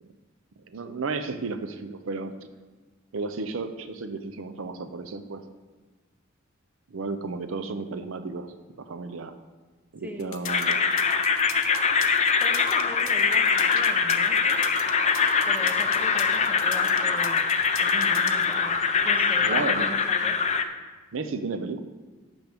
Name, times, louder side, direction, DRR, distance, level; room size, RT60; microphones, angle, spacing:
voice 1, 0.7-2.5 3.1-5.5 6.9-9.3 9.9-10.8 19.4-20.0 21.1-21.8, right 3 dB, 80° right, 9 dB, 0.6 m, -33 dB
voice 2, 10.0-10.4 12.4-14.6 15.5-17.4 17.8-18.8 19.0-20.3, equal, 10° right, 2 dB, 0.9 m, -40 dB
sound 1, 10.2-18.5, left 10 dB, 80° left, 0.8 m, -39 dB
sound 2, 10.5-20.6, left 5 dB, 35° left, 0.5 m, -23 dB
12.0 x 7.0 x 3.5 m, 1.3 s
head